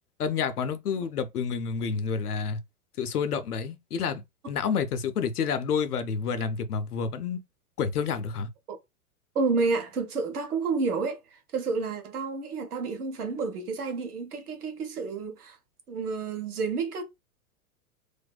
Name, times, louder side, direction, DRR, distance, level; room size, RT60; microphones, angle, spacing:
voice 1, 0.2-2.6 3.0-4.2 4.5-7.4 7.8-8.5, left 6 dB, 85° left, 0.6 m, -29 dB
voice 2, 9.3-15.6 15.9-17.0, right 4 dB, 80° right, 0.9 m, -30 dB
2.6 x 2.2 x 2.2 m
figure-of-eight pair, 100°, 44 cm